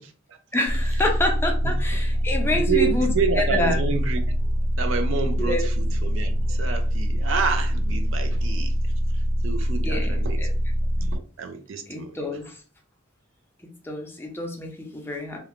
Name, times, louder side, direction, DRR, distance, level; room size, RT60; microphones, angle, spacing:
voice 1, 0.0-0.4 1.6-2.0 2.5-4.2 4.8-8.7 9.4-10.5 11.1-12.2, right 5 dB, 85° right, 0.4 m, -29 dB
voice 2, 0.5-3.1 3.4-3.8 5.4-5.7 9.8-10.5 10.9-11.1 11.9-12.6 13.8-15.4, left 1 dB, 10° left, 0.5 m, -27 dB
sound 1, 0.6-11.2, equal, 45° right, 0.9 m, -24 dB
sound 2, 2.3-2.7 3.9-4.7 5.9-6.7 7.9-8.7, left 2 dB, 50° left, 0.7 m, -40 dB
2.5 x 2.2 x 2.9 m
head